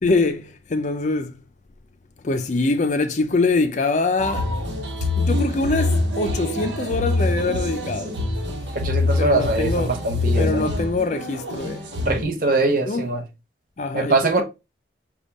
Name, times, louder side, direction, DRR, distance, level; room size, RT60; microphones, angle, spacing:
voice 1, 0.0-1.3 2.2-4.5 5.2-8.2 9.1-10.0 10.4-11.9 12.9-13.1 13.8-14.4, left 3 dB, 40° left, 0.4 m, -24 dB
sound 1, 4.2-12.2, left 2 dB, 90° right, 1.0 m, -25 dB
voice 2, 8.7-10.7 12.0-13.2 13.9-14.4, right 2 dB, 50° right, 0.9 m, -22 dB
5.1 x 2.3 x 4.0 m
head